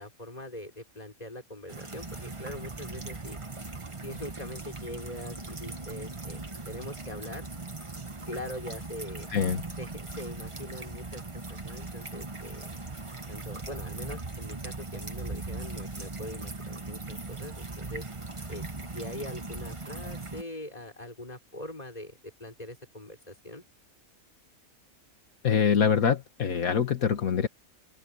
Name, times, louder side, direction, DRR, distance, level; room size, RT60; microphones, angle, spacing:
voice 1, 0.0-3.4 4.0-7.5 8.3-9.3 9.8-11.2 11.5-12.7 13.3-18.1 18.5-23.6, left 1 dB, 25° left, 5.2 m, -42 dB
sound 1, 1.7-20.4, right 3 dB, 20° right, 1.3 m, -39 dB
voice 2, 9.3-9.6 25.4-27.5, left 7 dB, 75° left, 1.8 m, -24 dB
open air
omnidirectional pair, 1.5 m